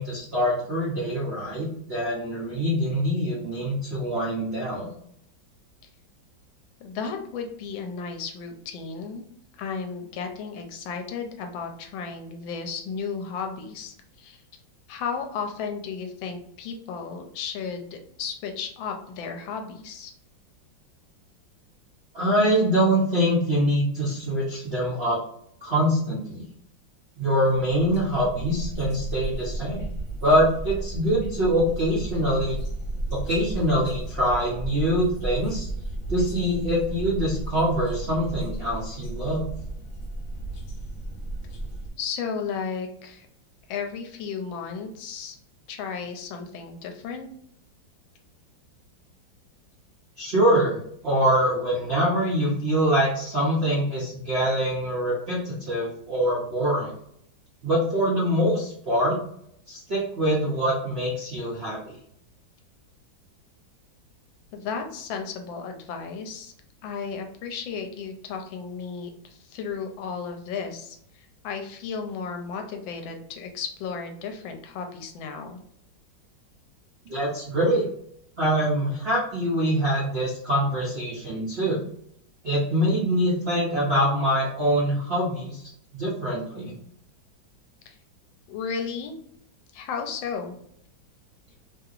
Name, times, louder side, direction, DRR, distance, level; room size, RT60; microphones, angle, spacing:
voice 1, 0.0-4.9 22.1-25.2 25.6-26.4 27.2-29.8 30.2-32.6 33.1-35.7 36.1-39.4 50.2-56.9 57.6-59.2 59.7-61.8 77.1-77.8 78.4-81.8 82.4-85.6 85.9-86.7, equal, 60° right, -6 dB, 0.6 m, -24 dB
voice 2, 6.8-9.2 9.6-14.4 14.9-20.1 42.0-43.3 43.7-45.4 45.7-47.3 64.5-66.5 66.8-75.6 87.9-88.0 88.5-89.1 89.7-90.6, left 5 dB, 80° left, 4 dB, 1.3 m, -34 dB
sound 1, 27.5-41.9, right 1 dB, 65° left, 0.7 m, -34 dB
3.2 x 2.8 x 2.4 m, 0.70 s
omnidirectional pair, 2.1 m